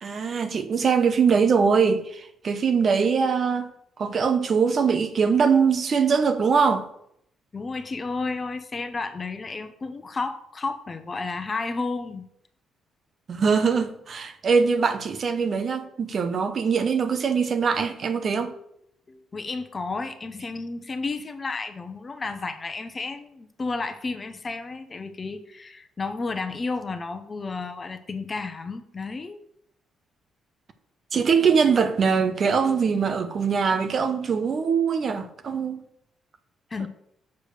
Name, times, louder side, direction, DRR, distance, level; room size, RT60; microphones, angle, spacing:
voice 1, 0.0-3.7 4.0-6.9 13.3-18.5 31.1-35.8, right 6 dB, 50° right, 0.9 m, -22 dB
voice 2, 7.5-12.3 19.1-29.4 36.7-36.9, left 3 dB, 30° left, 0.9 m, -32 dB
7.0 x 4.8 x 6.5 m
cardioid pair, 90°, 0 cm